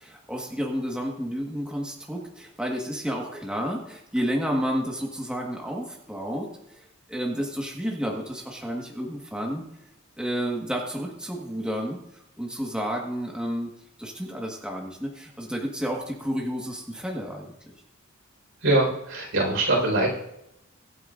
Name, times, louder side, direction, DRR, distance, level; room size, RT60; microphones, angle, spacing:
voice 1, 0.0-6.5 7.1-9.6 10.2-12.0 12.4-13.7 14.0-17.5, equal, 5° right, -1 dB, 1.6 m, -31 dB
voice 2, 18.6-20.1, right 2 dB, 75° right, -2 dB, 4.8 m, -22 dB
23.5 x 9.3 x 2.6 m, 0.83 s
head